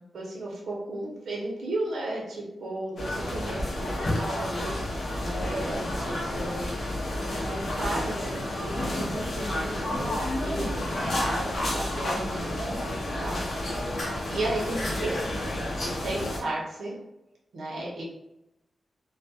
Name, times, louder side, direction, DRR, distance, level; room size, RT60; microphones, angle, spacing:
voice 1, 0.1-6.7 7.1-9.8 10.4-10.8 11.2-13.9 14.3-15.2 15.8-16.9 17.5-18.0, right 1 dB, 75° right, -4 dB, 0.7 m, -34 dB
sound 1, 3.0-16.4, left 1 dB, 50° left, 0.6 m, -30 dB
voice 2, 9.8-11.1 12.1-12.8 14.7-15.6, equal, ahead, -4 dB, 0.5 m, -40 dB
2.3 x 2.1 x 2.6 m, 0.92 s
wide cardioid pair, 170°, 0 cm